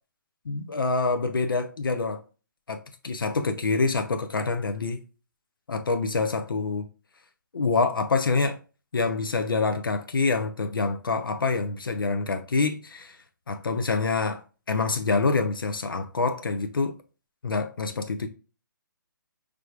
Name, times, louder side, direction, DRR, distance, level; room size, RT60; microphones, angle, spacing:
voice 1, 0.5-2.2 2.7-2.8 3.0-5.0 5.7-6.9 7.5-8.6 8.9-13.2 13.5-14.4 14.7-16.9 17.4-18.3, left 3 dB, 85° left, 0.6 m, -26 dB
4.9 x 3.4 x 2.3 m
hypercardioid pair, 140°, 11 cm